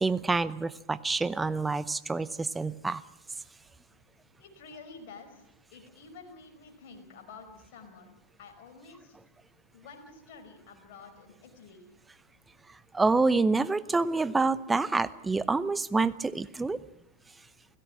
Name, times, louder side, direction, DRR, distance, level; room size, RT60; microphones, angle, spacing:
voice 1, 0.0-3.0 12.9-16.8, right 3 dB, 10° right, 16 dB, 0.8 m, -27 dB
voice 2, 4.4-8.1 8.4-9.2 9.7-11.9, left 4 dB, 50° left, 5 dB, 5.1 m, -50 dB
30.0 x 17.0 x 6.1 m, 0.85 s
figure-of-eight pair, 90°, 0 cm